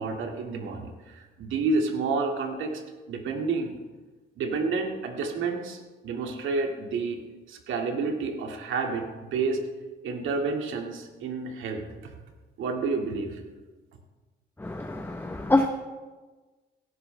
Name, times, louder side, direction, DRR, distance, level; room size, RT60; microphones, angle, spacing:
voice 1, 0.0-2.8 3.1-3.8 4.4-7.2 7.5-9.6 10.0-12.2 12.6-13.4, right 4 dB, 80° right, 3 dB, 2.1 m, -30 dB
voice 2, 14.6-15.7, left 2 dB, 10° left, 5 dB, 0.9 m, -25 dB
17.0 x 13.0 x 3.4 m, 1.3 s
cardioid pair, 90°, 20 cm